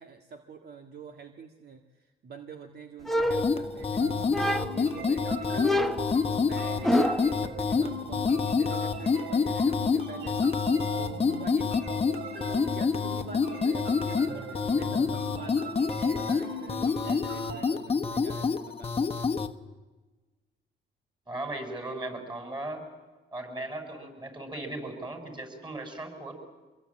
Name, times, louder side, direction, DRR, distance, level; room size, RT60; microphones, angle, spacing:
voice 1, 0.0-12.2 12.6-19.3, right 5 dB, 55° right, 5 dB, 1.7 m, -46 dB
sound 1, 3.1-3.9 4.3-5.0 5.6-7.4, equal, ahead, 1.2 m, -28 dB
sound 2, 3.3-19.5, left 5 dB, 30° left, 1.2 m, -28 dB
sound 3, 4.0-17.7, right 1 dB, 75° right, 3.8 m, -40 dB
voice 2, 21.3-22.8 23.3-26.3, right 2 dB, 20° right, 5 dB, 6.9 m, -37 dB
25.0 x 22.0 x 8.7 m, 1.2 s
cardioid pair, 90°, 20 cm